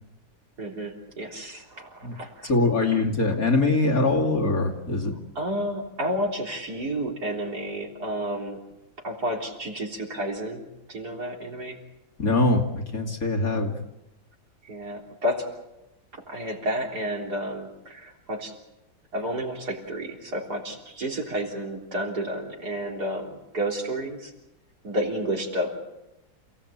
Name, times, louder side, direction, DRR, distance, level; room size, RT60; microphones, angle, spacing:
voice 1, 0.6-2.5 5.4-8.6 9.0-11.8 14.6-15.5 16.1-18.5 19.1-24.3 24.8-25.8, equal, 55° right, 0 dB, 4.1 m, -31 dB
voice 2, 2.4-5.1 12.2-13.8, left 2 dB, 45° left, 0 dB, 2.9 m, -23 dB
28.5 x 17.5 x 8.6 m, 0.97 s
omnidirectional pair, 2.1 m